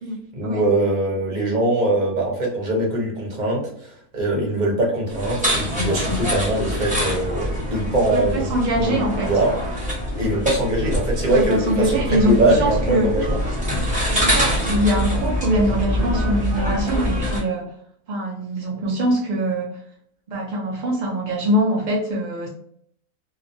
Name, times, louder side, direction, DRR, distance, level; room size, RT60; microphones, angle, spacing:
voice 1, 0.3-8.5 8.8-9.5 10.2-13.4, right 1 dB, 40° right, -3 dB, 0.8 m, -22 dB
sound 1, 5.1-17.4, equal, 5° right, 0.7 m, -24 dB
voice 2, 8.5-9.3 11.3-13.1 14.1-17.7 18.1-19.8 20.3-22.5, equal, 75° right, -2 dB, 0.4 m, -23 dB
2.9 x 2.1 x 2.5 m, 0.67 s
omnidirectional pair, 1.6 m